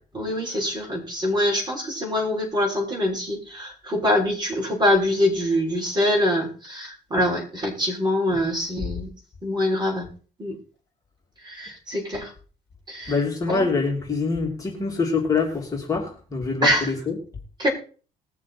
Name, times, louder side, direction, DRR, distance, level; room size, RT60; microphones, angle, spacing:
voice 1, 0.1-9.1 9.4-10.1 10.4-10.5 11.4-12.3 12.9-13.2 13.5-13.7 16.6-16.9 17.6-17.7, left 1 dB, 25° right, -1 dB, 6.4 m, -24 dB
voice 2, 13.1-17.1, left 4 dB, 20° left, -1 dB, 3.1 m, -25 dB
20.5 x 7.3 x 4.3 m, 0.40 s
cardioid pair, 110°, 17 cm